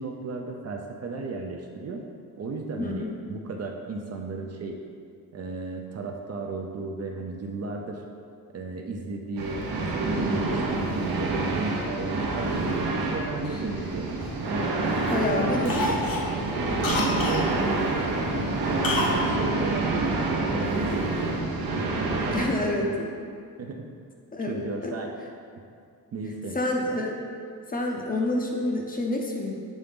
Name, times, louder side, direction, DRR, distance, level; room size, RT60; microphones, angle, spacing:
voice 1, 0.0-2.0 2.4-4.8 5.3-8.0 8.5-14.1 14.5-14.7 15.1-16.0 16.8-17.8 18.2-21.3 21.9-23.0 23.6-23.8 24.5-25.1 26.1-26.6, right 3 dB, 45° right, 2 dB, 0.5 m, -34 dB
voice 2, 2.8-3.2 15.1-15.9 22.3-23.1 24.3-24.9 26.5-27.1 27.7-29.5, left 2 dB, 25° left, 0 dB, 0.5 m, -28 dB
sound 1, 9.4-22.5, right 2 dB, 70° right, 0.8 m, -27 dB
Cough, 13.4-14.7 15.1-15.3 15.6-17.5 18.8-19.2 19.5-19.6, left 2 dB, 65° left, 0.8 m, -29 dB
7.2 x 3.8 x 3.6 m, 2.2 s
wide cardioid pair, 165°, 37 cm